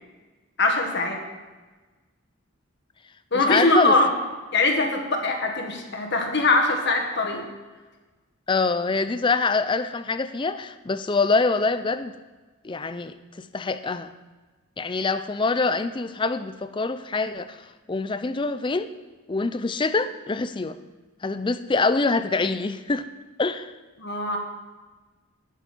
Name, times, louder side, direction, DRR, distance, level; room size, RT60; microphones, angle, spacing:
voice 1, 0.6-1.2 3.3-4.1 4.5-7.4 24.0-24.4, left 2 dB, 55° left, 3 dB, 1.7 m, -22 dB
voice 2, 3.3-4.0 8.5-12.1 12.6-14.1 14.8-18.9 19.3-20.8 21.2-23.1 23.4-23.7, left 3 dB, 20° left, 12 dB, 0.4 m, -25 dB
18.5 x 7.0 x 4.4 m, 1.3 s
head